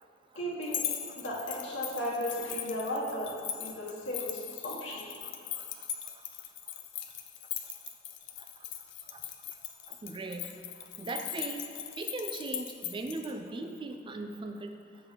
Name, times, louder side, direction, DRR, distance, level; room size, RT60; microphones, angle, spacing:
voice 1, 0.3-0.8 1.1-3.3 3.6-5.0, equal, 85° left, -4 dB, 1.4 m, -35 dB
sound 1, 0.6-13.3, left 11 dB, 65° left, 0.5 m, -39 dB
voice 2, 9.9-11.7 12.0-14.8, right 2 dB, 25° right, 5 dB, 0.4 m, -39 dB
6.9 x 3.7 x 5.7 m, 2.4 s
head